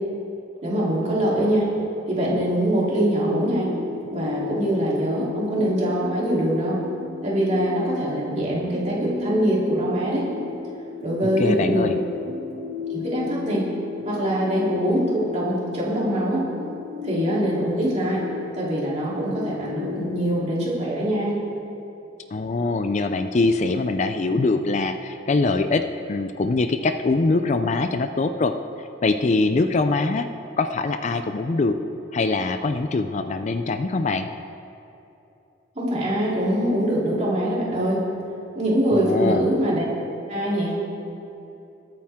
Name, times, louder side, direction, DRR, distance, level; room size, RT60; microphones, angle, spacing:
voice 1, 0.6-1.7 2.1-3.7 4.1-6.8 7.2-10.2 11.0-11.9 12.8-13.7 14.0-16.4 17.0-18.2 18.5-21.4 35.7-38.0 38.5-39.8 40.3-40.7, right 1 dB, 35° right, -6 dB, 3.4 m, -23 dB
sound 1, 2.9-20.3, left 4 dB, 55° right, 1.7 m, -35 dB
voice 2, 11.4-11.9 22.3-28.5 29.0-30.3 30.6-31.8 32.1-34.3 38.9-39.4, left 3 dB, 40° left, 8 dB, 0.4 m, -23 dB
21.0 x 8.7 x 3.6 m, 2.9 s
head